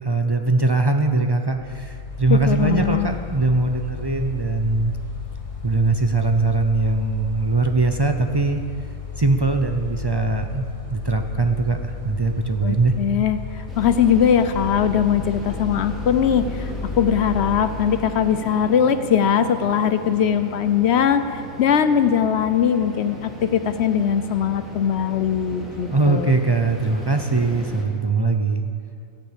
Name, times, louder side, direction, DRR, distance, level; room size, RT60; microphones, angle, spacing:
voice 1, 0.0-4.9 5.6-8.6 9.2-10.6 10.9-12.9 25.9-28.7, right 3 dB, 40° right, 5 dB, 0.3 m, -21 dB
Mechanical fan, 1.5-18.3, left 6 dB, 25° left, 1.6 m, -34 dB
voice 2, 2.3-3.1 12.6-26.4, left 8 dB, 60° left, 11 dB, 0.7 m, -20 dB
sound 1, 13.7-27.8, equal, ahead, 2.5 m, -37 dB
17.0 x 7.1 x 8.2 m, 2.4 s
omnidirectional pair, 1.5 m